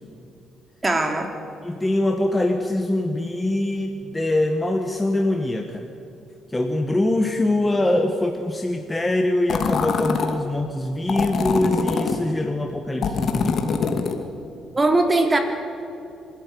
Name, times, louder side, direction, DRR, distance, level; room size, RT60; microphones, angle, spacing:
voice 1, 0.8-1.3 14.7-15.4, right 2 dB, 25° right, 5 dB, 3.3 m, -19 dB
voice 2, 1.6-5.9 6.5-13.6, left 1 dB, 15° left, 3 dB, 1.7 m, -23 dB
sound 1, 9.5-10.4 11.1-12.2 13.0-14.2, left 5 dB, 60° left, 2.4 m, -23 dB
25.5 x 13.5 x 9.8 m, 2.7 s
cardioid pair, 90°, 0 cm